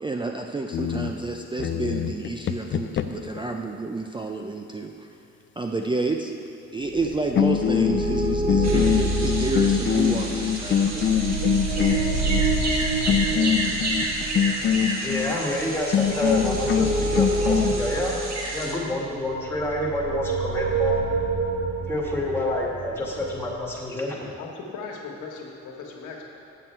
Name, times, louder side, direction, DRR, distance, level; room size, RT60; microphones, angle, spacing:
voice 1, 0.0-5.1 5.6-6.3 6.7-11.1, right 3 dB, 15° right, 3 dB, 0.5 m, -29 dB
sound 1, 0.7-3.4 6.9-7.1 7.4-12.5 13.1-15.3 15.9-17.7, left 8 dB, 40° left, 0.4 m, -24 dB
sound 2, 6.9-23.7, right 3 dB, 45° right, 1.2 m, -28 dB
sound 3, 8.6-18.7, right 2 dB, 60° right, 1.5 m, -32 dB
voice 2, 15.0-18.2 18.5-20.9 21.9-24.3, left 2 dB, 10° left, -3 dB, 1.8 m, -28 dB
voice 3, 24.4-26.2, left 4 dB, 85° left, -1 dB, 1.4 m, -38 dB
8.1 x 7.5 x 4.5 m, 2.7 s
cardioid pair, 90°, 30 cm